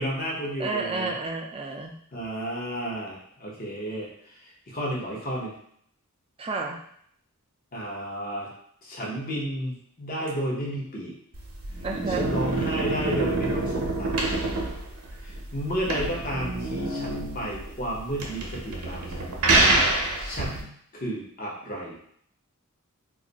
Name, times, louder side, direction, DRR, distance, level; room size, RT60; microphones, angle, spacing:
voice 1, 0.0-1.1 2.1-5.5 7.7-8.5 8.8-11.2 12.1-14.3 15.2-19.3 20.2-22.0, equal, 40° left, -3 dB, 0.8 m, -32 dB
voice 2, 0.6-2.0 6.4-6.8 11.8-12.3, right 3 dB, 25° right, 2 dB, 0.4 m, -30 dB
sound 1, 11.3-20.6, right 2 dB, 75° right, 0.7 m, -26 dB
2.6 x 2.4 x 4.0 m, 0.66 s
head